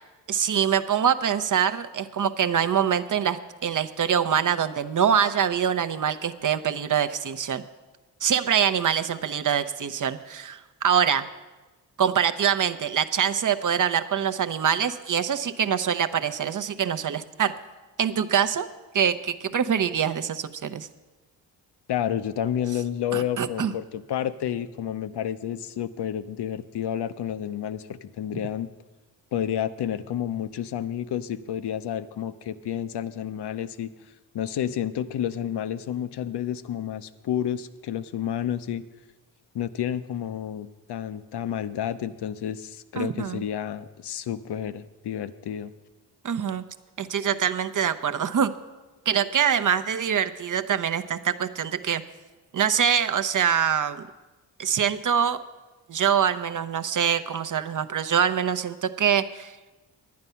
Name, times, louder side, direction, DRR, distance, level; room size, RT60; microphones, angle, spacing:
voice 1, 0.3-7.6 8.2-11.3 12.0-17.5 18.0-18.7 18.9-20.9 23.1-23.7 43.0-43.4 46.2-46.6 47.0-48.5 49.1-52.0 52.5-54.1 54.6-55.4 55.9-59.5, right 8 dB, 40° right, 11 dB, 0.7 m, -24 dB
voice 2, 21.9-28.7 29.3-33.9 34.3-38.9 39.5-45.7, left 10 dB, 60° left, 13 dB, 0.7 m, -30 dB
10.5 x 9.5 x 5.6 m, 1.2 s
supercardioid pair, 50°, 46 cm